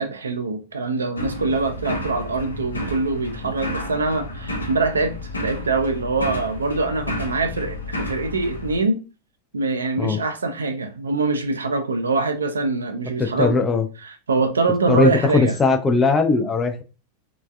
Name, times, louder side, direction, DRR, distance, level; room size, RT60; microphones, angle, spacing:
voice 1, 0.0-5.1 5.4-9.0 9.5-13.6 14.0-15.6, right 3 dB, 70° right, 0.4 m, -24 dB
sound 1, 1.2-8.8, left 1 dB, 80° left, 0.5 m, -31 dB
voice 2, 13.2-13.9 14.9-16.8, left 3 dB, 20° left, 0.3 m, -19 dB
3.2 x 2.2 x 2.2 m
figure-of-eight pair, 90°, 0 cm